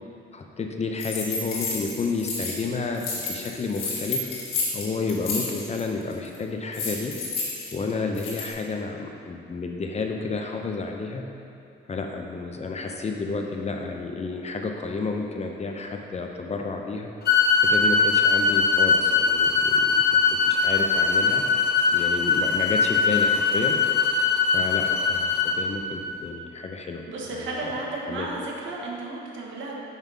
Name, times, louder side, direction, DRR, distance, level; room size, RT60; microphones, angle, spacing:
voice 1, 0.3-4.3 4.7-7.1 7.7-11.2 11.9-17.1 17.6-21.5 21.9-23.8 24.5-27.0 27.3-27.7 28.1-28.3, left 3 dB, 35° left, 3 dB, 0.6 m, -31 dB
sound 1, 1.0-2.7 2.9-5.9 6.1-6.4 6.7-8.5, left 3 dB, 85° left, 1.5 m, -31 dB
sound 2, 17.3-25.6, left 5 dB, 55° left, 1.0 m, -21 dB
voice 2, 27.1-29.8, right 2 dB, 75° right, -2 dB, 1.3 m, -33 dB
5.7 x 5.4 x 4.7 m, 2.6 s
cardioid pair, 90°, 20 cm